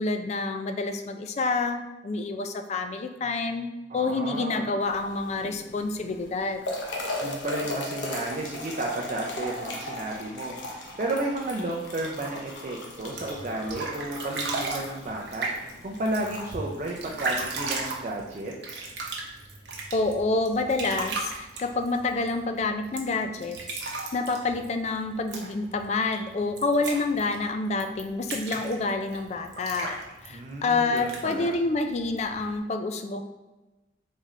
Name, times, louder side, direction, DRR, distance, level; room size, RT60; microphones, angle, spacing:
voice 1, 0.0-6.6 19.9-23.8 24.1-30.0 30.2-33.2, left 3 dB, 35° left, 6 dB, 0.3 m, -28 dB
voice 2, 3.9-4.7 7.2-18.9 30.3-31.5, right 2 dB, 40° right, -1 dB, 0.4 m, -33 dB
sound 1, 4.8-17.8, left 1 dB, 75° left, 0.8 m, -38 dB
sound 2, 13.0-32.6, right 3 dB, 65° right, 0.8 m, -37 dB
4.1 x 3.7 x 3.1 m, 1.1 s
head